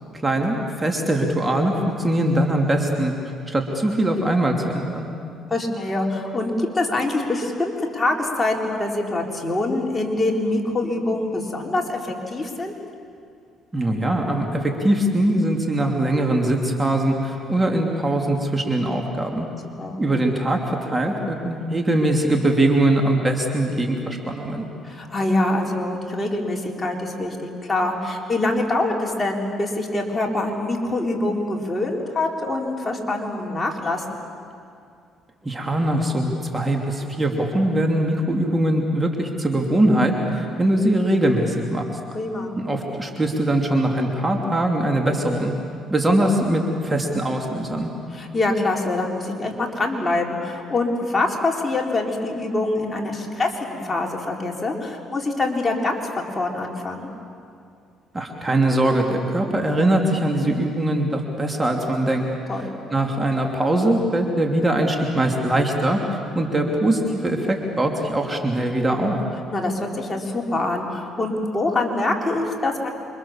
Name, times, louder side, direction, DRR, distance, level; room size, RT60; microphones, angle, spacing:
voice 1, 0.1-3.1 3.5-5.1 13.7-19.5 20.0-24.7 35.4-41.9 42.6-45.5 45.9-47.9 58.1-62.3 62.6-69.2, right 1 dB, 20° right, 2 dB, 3.0 m, -22 dB
voice 2, 5.5-12.7 19.8-20.0 24.8-34.2 42.1-42.5 48.1-57.1 62.5-62.8 69.5-72.9, left 2 dB, 20° left, 0 dB, 4.2 m, -25 dB
28.5 x 24.5 x 7.4 m, 2.4 s
cardioid pair, 85°, 0 cm